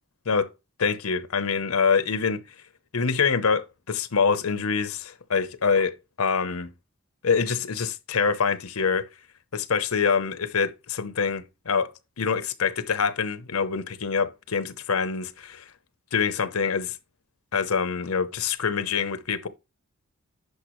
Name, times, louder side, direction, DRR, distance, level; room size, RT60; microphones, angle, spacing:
voice 1, 0.8-2.4 2.9-6.7 7.2-9.0 9.5-11.9 12.2-15.7 16.1-17.0 17.5-19.5, left 5 dB, 90° left, 0.8 m, -25 dB
10.5 x 5.5 x 3.1 m
head